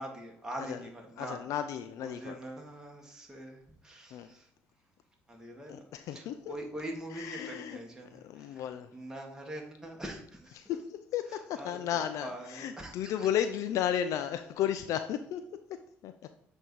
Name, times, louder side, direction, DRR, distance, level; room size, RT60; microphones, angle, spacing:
voice 1, 0.0-1.4 2.0-4.5 5.3-10.6 11.3-13.3, right 1 dB, 10° right, 1.4 m, -44 dB
voice 2, 1.2-2.4 4.1-4.3 5.7-6.5 7.1-7.8 8.1-8.9 10.6-16.3, left 10 dB, 70° left, 0.3 m, -34 dB
7.7 x 2.7 x 4.6 m
supercardioid pair, 65°, 6 cm